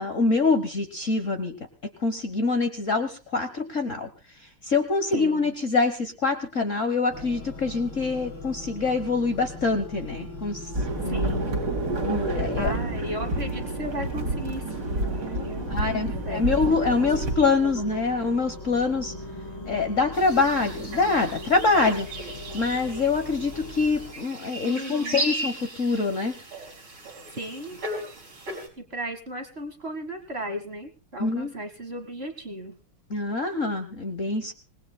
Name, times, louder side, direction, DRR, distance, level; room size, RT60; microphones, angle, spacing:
voice 1, 0.0-1.6 2.0-4.1 4.6-10.6 11.0-11.3 12.0-12.7 15.7-19.1 19.6-22.1 22.5-26.3 31.2-31.5 33.1-34.5, left 3 dB, 45° left, 7 dB, 1.2 m, -25 dB
voice 2, 5.1-5.5 11.0-11.6 12.3-18.0 24.6-25.3 27.3-27.8 28.8-32.7, right 1 dB, 35° right, 7 dB, 1.5 m, -36 dB
sound 1, 7.1-24.1, left 2 dB, 70° left, 3.7 m, -39 dB
sound 2, 10.7-17.4, right 2 dB, 55° right, 3.4 m, -29 dB
sound 3, 20.1-28.7, right 1 dB, 75° right, 5.3 m, -36 dB
27.0 x 19.0 x 2.2 m, 0.32 s
omnidirectional pair, 2.3 m